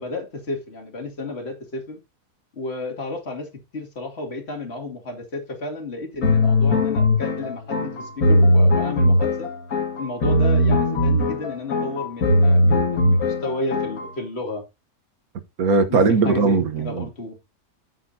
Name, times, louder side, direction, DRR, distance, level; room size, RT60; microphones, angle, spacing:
voice 1, 0.0-2.0 2.6-9.5 10.0-14.6 15.9-17.4, left 2 dB, 40° left, 2.7 m, -32 dB
sound 1, 6.2-14.1, left 1 dB, 70° left, 2.5 m, -19 dB
voice 2, 15.6-17.1, right 4 dB, 70° right, 1.6 m, -19 dB
10.0 x 7.8 x 2.8 m
omnidirectional pair, 1.6 m